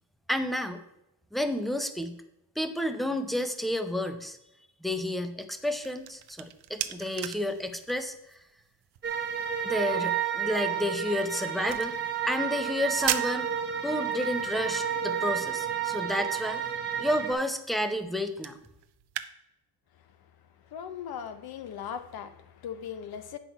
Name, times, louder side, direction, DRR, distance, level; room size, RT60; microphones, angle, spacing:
voice 1, 0.3-0.8 1.3-2.2 2.6-4.4 4.8-8.4 9.6-12.0 12.3-13.5 13.8-16.6 17.0-18.6, left 1 dB, ahead, 0.4 m, -31 dB
sound 1, 5.5-19.3, right 12 dB, 70° right, 0.7 m, -41 dB
sound 2, 9.0-17.3, right 8 dB, 25° right, 0.8 m, -31 dB
voice 2, 20.7-23.4, left 8 dB, 65° left, 0.9 m, -39 dB
9.2 x 6.1 x 4.5 m
cardioid pair, 180°, 40 cm